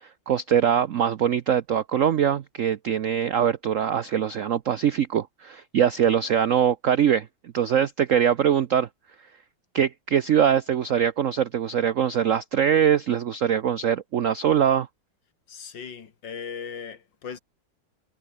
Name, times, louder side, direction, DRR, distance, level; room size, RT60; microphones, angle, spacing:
voice 1, 0.3-7.3 7.5-8.9 9.7-14.9, right 9 dB, 65° right, 0.7 m, -22 dB
voice 2, 15.5-17.4, left 6 dB, 65° left, 2.6 m, -38 dB
omnidirectional pair, 2.2 m